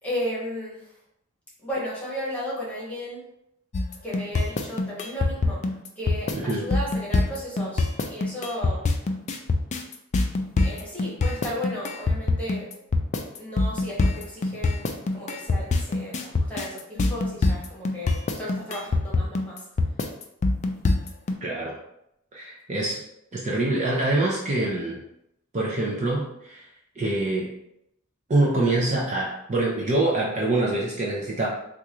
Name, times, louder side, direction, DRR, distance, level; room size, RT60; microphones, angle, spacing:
voice 1, 0.0-0.9 1.6-3.2 4.0-8.9 10.6-12.7 13.4-19.7, equal, 5° left, -6 dB, 1.1 m, -34 dB
sound 1, 3.7-21.3, left 3 dB, 35° left, 0.3 m, -24 dB
voice 2, 6.3-6.7 21.4-21.7 22.3-23.0 23.3-25.0 25.5-26.7 27.0-27.5 28.3-31.5, right 2 dB, 35° right, -4 dB, 0.5 m, -25 dB
3.6 x 2.4 x 3.0 m, 0.81 s
head